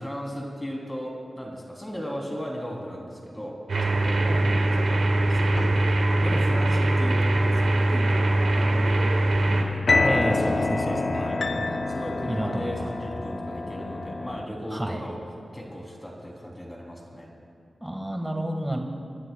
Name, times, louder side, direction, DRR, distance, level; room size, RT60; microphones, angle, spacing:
voice 1, 0.0-5.9 6.2-15.2 15.5-17.3, equal, 15° left, -1 dB, 3.0 m, -36 dB
sound 1, 3.7-9.6, right 1 dB, 85° right, 1.5 m, -22 dB
voice 2, 4.2-4.6 6.3-6.5 9.4-9.6 10.0-11.9 12.3-13.1 14.7-15.0 17.8-18.8, right 1 dB, 15° right, 2 dB, 1.5 m, -31 dB
sound 2, 5.5-6.5 9.9-14.5, left 3 dB, 60° left, 0.5 m, -27 dB
29.0 x 12.0 x 2.2 m, 2.4 s
cardioid pair, 50°, 0 cm